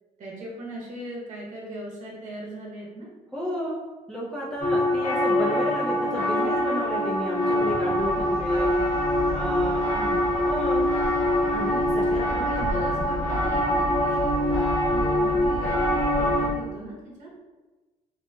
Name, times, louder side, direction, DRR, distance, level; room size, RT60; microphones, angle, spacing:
voice 1, 0.2-3.1 9.9-10.3 12.1-17.3, right 1 dB, 60° right, -4 dB, 0.7 m, -39 dB
voice 2, 3.3-3.7 4.1-8.8 9.3-9.8 10.4-10.9 11.5-12.4 12.7-12.9, equal, 5° left, -7 dB, 0.4 m, -32 dB
sound 1, 4.6-16.5, left 1 dB, 70° left, 0.6 m, -24 dB
sound 2, 7.9-16.5, right 1 dB, 40° left, 1.1 m, -34 dB
2.6 x 2.6 x 2.2 m, 1.2 s
cardioid pair, 130°, 14 cm